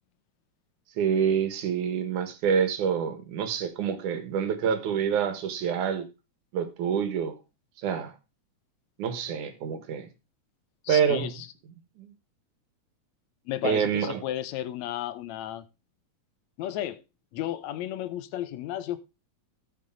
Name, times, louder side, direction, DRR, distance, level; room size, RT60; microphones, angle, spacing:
voice 1, 1.0-6.1 6.5-7.3 7.8-8.1 9.0-10.1 10.9-11.3 12.0-12.1 13.6-14.2, right 7 dB, 80° right, 2.9 m, -27 dB
voice 2, 10.8-11.5 13.5-15.6 16.6-17.0 17.3-19.0, left 12 dB, 75° left, 1.9 m, -33 dB
13.5 x 6.8 x 3.7 m
omnidirectional pair, 3.4 m